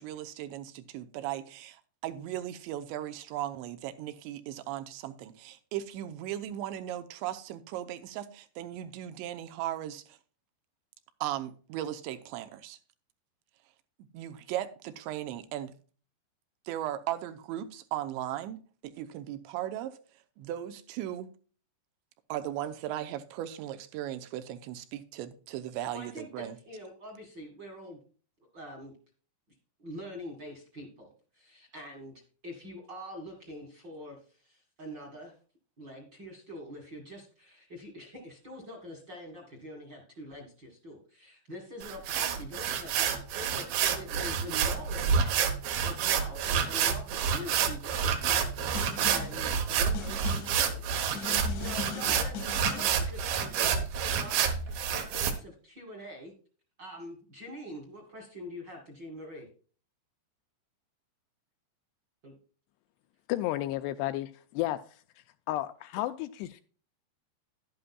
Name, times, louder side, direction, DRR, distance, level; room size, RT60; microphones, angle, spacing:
voice 1, 0.0-10.2 11.2-12.8 14.1-15.7 16.7-20.0 20.4-21.3 22.3-26.6, right 12 dB, 85° right, 3.0 m, -37 dB
voice 2, 25.9-28.0 28.5-28.9 29.8-35.3 35.8-48.5 48.8-56.3 56.8-59.5 62.2-62.3, equal, 50° right, 1.4 m, -45 dB
sound 1, 41.8-55.3, right 7 dB, 70° right, 2.4 m, -28 dB
Snare drum, 48.7-49.4 49.9-50.6 51.1-53.0, left 7 dB, 65° left, 2.0 m, -40 dB
voice 3, 63.3-64.8 65.5-66.6, left 15 dB, 85° left, 2.5 m, -32 dB
11.5 x 11.0 x 2.3 m
omnidirectional pair, 5.1 m